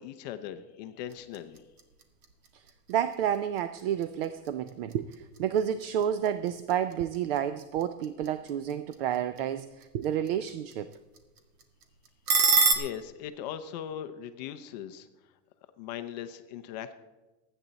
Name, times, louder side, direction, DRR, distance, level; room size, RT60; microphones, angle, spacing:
voice 1, 0.0-1.6 12.4-15.1 15.8-16.9, left 10 dB, 30° left, 9 dB, 0.5 m, -39 dB
sound 1, 1.0-12.7, right 4 dB, 70° right, 2.1 m, -34 dB
voice 2, 2.9-10.9, right 9 dB, 40° right, 12 dB, 0.5 m, -30 dB
26.0 x 9.0 x 4.0 m, 1.2 s
supercardioid pair, 155°, 47 cm